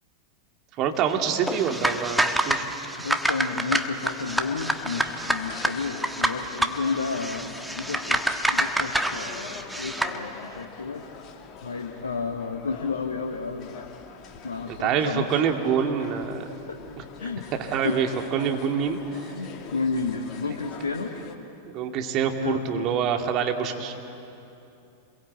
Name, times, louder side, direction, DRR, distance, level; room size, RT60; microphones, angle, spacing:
voice 1, 0.8-2.7 14.7-16.5 17.6-19.3 21.7-23.9, right 7 dB, 35° right, 4 dB, 2.5 m, -26 dB
sound 1, 1.4-10.2, right 1 dB, 5° right, 1.3 m, -27 dB
voice 2, 3.0-7.4 7.7-11.0 11.6-13.9 14.4-15.4 16.0-16.1 16.7-16.8 17.2-17.5 17.8-18.0 19.3-21.1 22.4-23.0, left 4 dB, 75° left, 4 dB, 1.4 m, -31 dB
sound 2, 4.0-21.3, left 6 dB, 35° left, 2.4 m, -44 dB
28.5 x 22.5 x 8.2 m, 2.8 s
figure-of-eight pair, 90°, 0 cm